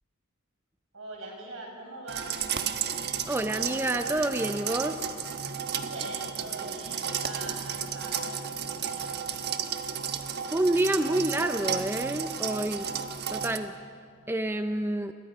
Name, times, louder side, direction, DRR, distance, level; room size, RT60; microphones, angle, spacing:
voice 1, 0.9-2.3 5.5-9.3, right 2 dB, 65° right, 0 dB, 6.7 m, -43 dB
sound 1, 2.1-13.6, right 7 dB, 50° right, 1.2 m, -33 dB
voice 2, 3.3-5.1 10.5-12.9 13.3-13.7 14.3-15.1, right 1 dB, 10° right, 7 dB, 0.6 m, -28 dB
30.0 x 22.5 x 5.5 m, 2.4 s
head